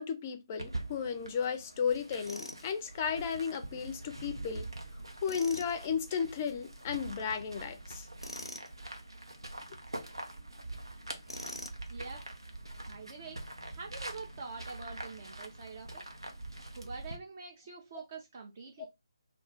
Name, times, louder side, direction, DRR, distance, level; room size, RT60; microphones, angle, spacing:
voice 1, 0.0-4.7 5.2-8.1, left 6 dB, 25° left, 0.4 m, -34 dB
sound 1, 0.6-17.2, right 2 dB, 80° right, 0.7 m, -44 dB
Tools, 2.3-2.6 5.2-5.7 8.2-8.7 11.3-11.9, left 1 dB, 90° left, 0.5 m, -43 dB
voice 2, 11.9-12.2 12.9-13.4 13.7-16.0 16.7-18.9, right 4 dB, 35° right, 0.5 m, -45 dB
2.3 x 2.3 x 3.7 m
figure-of-eight pair, 150°, 2 cm